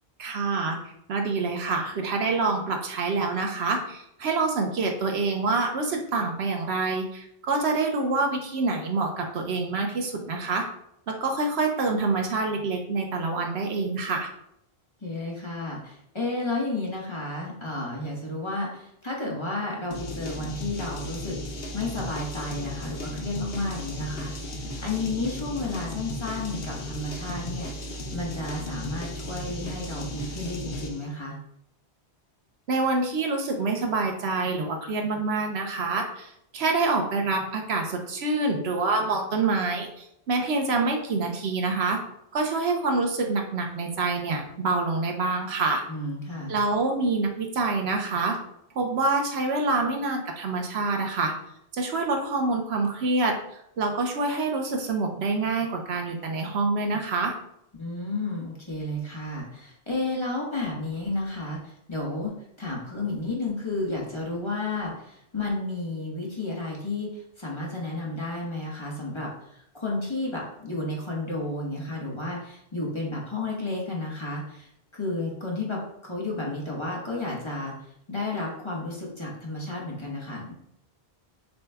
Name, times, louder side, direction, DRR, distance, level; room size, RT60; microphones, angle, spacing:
voice 1, 0.2-10.7 11.1-14.3 32.7-42.0 42.3-45.8 46.5-48.4 48.7-51.3 51.7-53.4 53.8-57.3, right 3 dB, 80° right, 2 dB, 1.0 m, -26 dB
voice 2, 15.0-21.4 21.7-31.4 45.9-46.5 57.8-62.3 62.6-80.5, left 2 dB, 30° left, -3 dB, 1.1 m, -32 dB
sound 1, 19.9-31.1, left 1 dB, 65° left, 1.0 m, -35 dB
6.8 x 2.3 x 3.4 m, 0.75 s
omnidirectional pair, 1.1 m